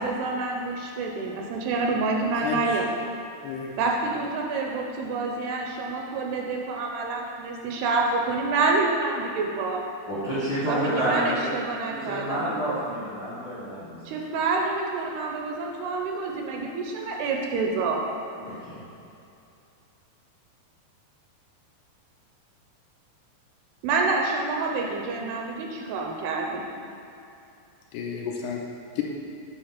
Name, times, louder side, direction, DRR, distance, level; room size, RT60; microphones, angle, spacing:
voice 1, 0.0-2.9 3.8-9.8 10.7-12.6 14.1-18.1 23.8-26.7, right 3 dB, 80° right, 0 dB, 2.5 m, -27 dB
voice 2, 2.4-2.8 3.4-3.8 27.9-28.6, left 6 dB, 85° left, -1 dB, 2.6 m, -32 dB
voice 3, 10.1-11.5 11.9-14.0 18.4-18.8, right 1 dB, 60° left, -13 dB, 1.2 m, -29 dB
8.7 x 3.2 x 5.8 m, 2.7 s
omnidirectional pair, 4.8 m